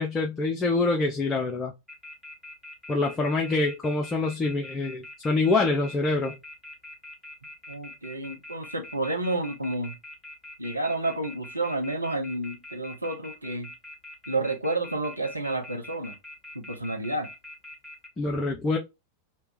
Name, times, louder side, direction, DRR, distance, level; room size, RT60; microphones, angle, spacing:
voice 1, 0.0-1.7 2.9-6.3 18.2-18.8, left 3 dB, 20° left, 0.7 m, -25 dB
sound 1, 1.9-18.1, left 2 dB, 5° left, 1.1 m, -44 dB
voice 2, 7.7-10.0 10.6-13.7 14.3-16.1 16.5-17.3, right 2 dB, 85° right, 0.9 m, -30 dB
3.2 x 2.9 x 3.4 m
figure-of-eight pair, 90°, 0 cm